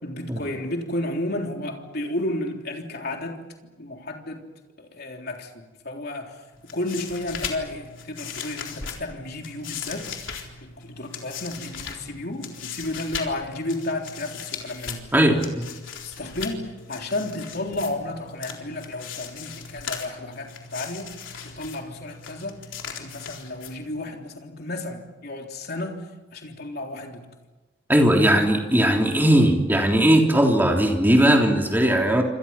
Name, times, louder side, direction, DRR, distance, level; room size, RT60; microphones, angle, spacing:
voice 1, 0.0-3.4 3.8-4.4 4.8-6.4 6.7-10.2 10.6-15.1 16.0-27.3 28.2-28.4, left 1 dB, 50° left, 2 dB, 3.6 m, -32 dB
sound 1, 6.5-24.1, left 6 dB, 70° left, 3.9 m, -38 dB
voice 2, 27.9-32.2, right 1 dB, 10° right, 1 dB, 3.5 m, -18 dB
28.0 x 27.0 x 5.9 m, 1.2 s
head